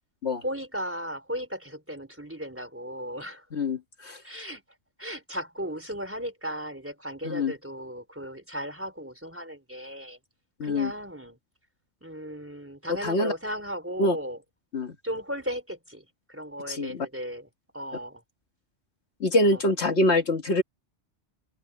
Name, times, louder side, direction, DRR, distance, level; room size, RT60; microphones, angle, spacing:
voice 1, 0.4-3.5 4.2-4.6 5.0-10.2 10.6-11.4 12.0-14.4 15.0-18.2 19.4-19.6, equal, 10° right, 4.0 m, -36 dB
voice 2, 3.5-4.2 7.2-7.5 10.6-10.9 13.0-13.3 14.0-14.2 14.7-14.9 16.7-17.1 19.2-20.6, left 2 dB, 65° left, 1.7 m, -25 dB
open air
omnidirectional pair, 1.2 m